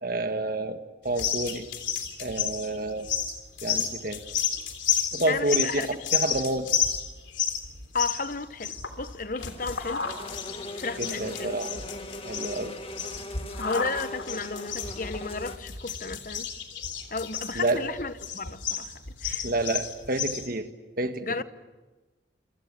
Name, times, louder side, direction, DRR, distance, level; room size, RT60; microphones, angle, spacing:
voice 1, 0.0-1.7 2.2-3.1 3.6-4.2 5.1-6.7 11.0-11.7 12.2-12.8 17.5-17.8 19.4-20.7 21.0-21.4, right 2 dB, 50° right, 1.7 m, -29 dB
sound 1, 1.1-20.5, left 7 dB, 90° left, 3.2 m, -32 dB
voice 2, 5.3-5.9 7.9-10.0 10.8-11.6 13.6-16.5 17.1-19.5 21.2-21.4, left 4 dB, 45° left, 1.1 m, -33 dB
sound 2, 9.4-15.6, left 1 dB, 30° left, 1.9 m, -40 dB
28.0 x 24.5 x 7.6 m
head